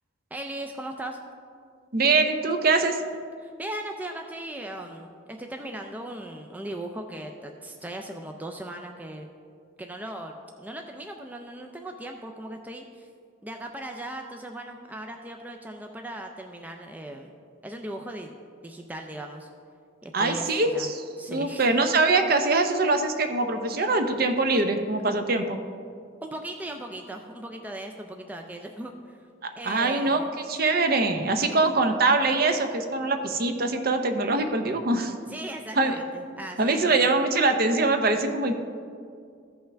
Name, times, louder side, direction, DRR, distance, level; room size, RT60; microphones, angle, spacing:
voice 1, 0.3-1.2 3.4-9.3 9.8-13.1 13.4-17.3 17.6-18.3 18.6-19.5 20.0-20.9 21.2-21.7 26.2-29.2 29.6-30.3 35.3-37.1, right 1 dB, 10° right, 3 dB, 0.4 m, -38 dB
voice 2, 1.9-3.0 20.1-21.0 21.3-25.6 29.6-30.2 30.5-35.1 35.8-35.9 36.6-38.5, right 3 dB, 50° right, 6 dB, 0.6 m, -23 dB
14.5 x 5.6 x 3.4 m, 2.3 s
head